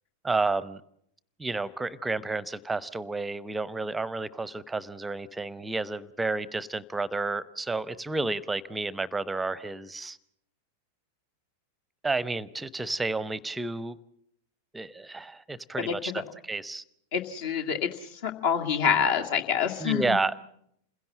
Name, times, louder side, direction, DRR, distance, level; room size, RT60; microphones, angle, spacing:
voice 1, 0.2-0.8 1.4-10.2 12.0-14.0 14.7-16.8 19.8-20.3, right 3 dB, 10° right, 0.8 m, -31 dB
voice 2, 17.1-20.1, left 7 dB, 55° left, 2.1 m, -27 dB
28.0 x 16.5 x 7.6 m
figure-of-eight pair, 90°, 0 cm